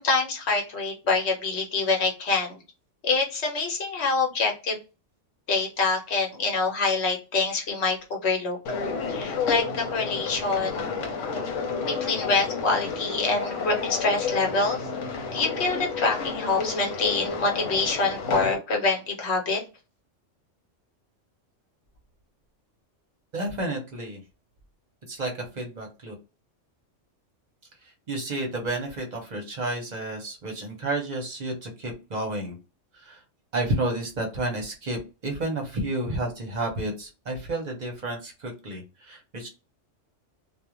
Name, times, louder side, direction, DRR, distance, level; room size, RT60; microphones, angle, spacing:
voice 1, 0.0-2.6 3.0-4.8 5.5-8.6 9.1-10.9 11.8-14.9 15.3-19.6, left 3 dB, 60° left, 1 dB, 1.1 m, -26 dB
sound 1, 8.7-18.6, left 5 dB, 80° left, 1.0 m, -31 dB
voice 2, 23.3-24.2 25.1-26.1 27.8-32.6 32.9-33.2 33.5-39.5, right 2 dB, 40° right, 2 dB, 0.7 m, -31 dB
2.4 x 2.1 x 2.9 m, 0.30 s
omnidirectional pair, 1.3 m